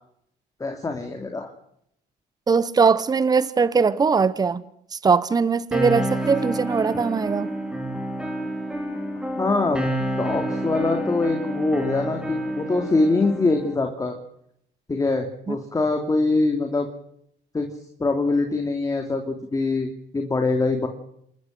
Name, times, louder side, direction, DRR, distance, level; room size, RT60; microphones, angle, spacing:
voice 1, 0.6-1.5 9.4-9.8 10.2-14.2 14.9-16.9 17.5-17.7 18.0-20.9, left 3 dB, 20° left, 2.8 m, -23 dB
voice 2, 2.5-4.6 4.9-7.6 15.5-15.6, right 5 dB, 25° right, 0.9 m, -20 dB
sound 1, 5.7-13.7, right 1 dB, 5° right, 4.3 m, -29 dB
27.5 x 13.5 x 7.7 m
cardioid pair, 110°, 17 cm